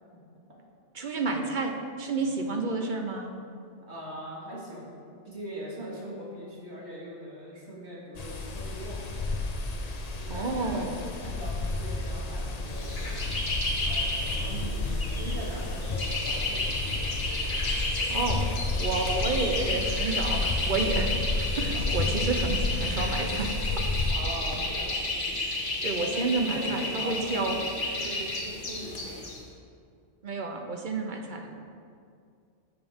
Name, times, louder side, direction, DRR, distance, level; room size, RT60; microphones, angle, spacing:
voice 1, 0.9-3.3 10.3-11.0 18.1-18.5 18.8-23.5 25.3-27.6 30.2-31.6, right 3 dB, 45° right, 3 dB, 0.9 m, -30 dB
voice 2, 2.2-2.5 3.9-5.0 5.2-9.2 10.2-10.9 11.2-13.3 13.9-17.0 21.6-22.3 24.1-25.0 26.0-26.3 26.5-27.6 28.0-29.2, right 1 dB, 65° right, -5 dB, 2.4 m, -41 dB
sound 1, 8.1-24.1, left 2 dB, 40° left, 0.7 m, -31 dB
sound 2, 12.7-29.4, left 2 dB, 75° left, 1.8 m, -32 dB
12.0 x 7.1 x 3.6 m, 2.3 s
omnidirectional pair, 1.2 m